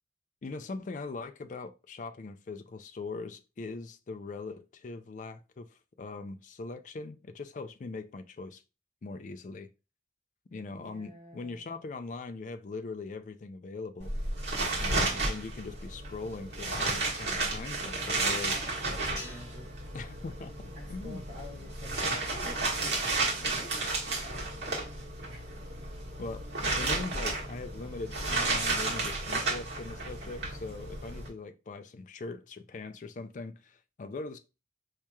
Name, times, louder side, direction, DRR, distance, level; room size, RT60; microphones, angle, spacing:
voice 1, 0.4-8.6 9.0-9.7 10.5-14.1 14.8-18.6 19.9-20.5 20.9-21.2 26.2-34.4, left 3 dB, 40° left, 0.3 m, -41 dB
voice 2, 10.7-11.6 14.7-15.2 18.4-19.7 20.7-24.8 25.3-25.7, left 1 dB, 45° right, 1.0 m, -50 dB
sound 1, 14.0-31.3, right 2 dB, 65° right, 1.2 m, -33 dB
sound 2, 19.2-21.6, left 1 dB, 15° left, 1.6 m, -50 dB
4.5 x 2.8 x 2.3 m
head